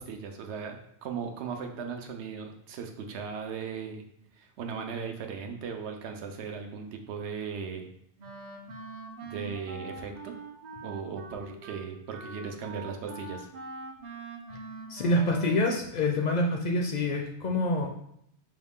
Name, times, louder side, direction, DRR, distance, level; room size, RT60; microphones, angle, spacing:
voice 1, 0.0-4.0 4.4-7.9 9.2-10.3 10.8-13.5, right 6 dB, 80° right, 4 dB, 0.9 m, -37 dB
Wind instrument woodwind instrument, 8.2-15.7, right 3 dB, 50° right, 0.6 m, -43 dB
voice 2, 14.9-17.9, left 1 dB, 55° left, 1 dB, 0.5 m, -26 dB
4.8 x 2.4 x 3.5 m, 0.72 s
omnidirectional pair, 1.1 m